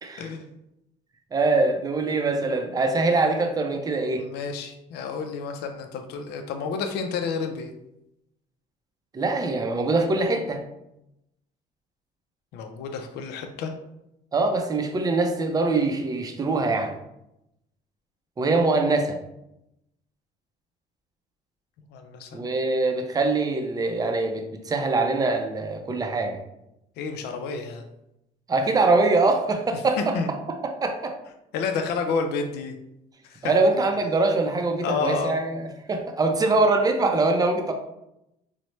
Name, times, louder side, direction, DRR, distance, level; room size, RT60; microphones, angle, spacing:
voice 1, 0.2-0.5 4.1-7.7 12.5-13.7 21.9-22.4 27.0-27.8 30.1-30.3 31.5-32.7 33.2-33.5 34.8-35.4, left 5 dB, 80° left, 5 dB, 0.4 m, -30 dB
voice 2, 1.3-4.3 9.1-10.6 14.3-16.9 18.4-19.2 22.3-26.4 28.5-30.1 30.8-31.1 33.4-37.7, right 3 dB, 20° right, 4 dB, 0.5 m, -23 dB
4.1 x 2.0 x 3.1 m, 0.86 s
cardioid pair, 110°, 17 cm